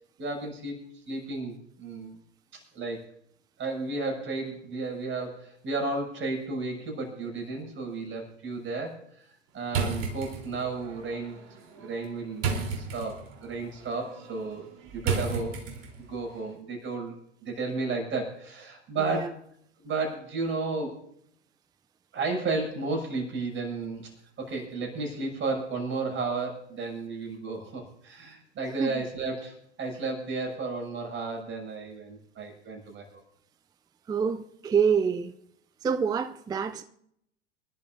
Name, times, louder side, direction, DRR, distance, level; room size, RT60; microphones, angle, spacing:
voice 1, 0.2-0.8 1.1-2.2 2.5-3.1 3.6-9.3 9.5-11.4 11.7-12.5 12.7-14.7 14.9-17.1 17.4-19.4 19.8-21.0 22.1-24.1 24.4-33.2, right 3 dB, 35° right, 6.8 m, -33 dB
sound 1, 9.7-16.2, right 5 dB, 50° right, 3.8 m, -34 dB
voice 2, 19.0-19.3 28.7-29.0 34.1-35.3 35.8-36.8, right 6 dB, 10° right, 0.5 m, -27 dB
27.0 x 12.0 x 2.7 m
hypercardioid pair, 85°, 34 cm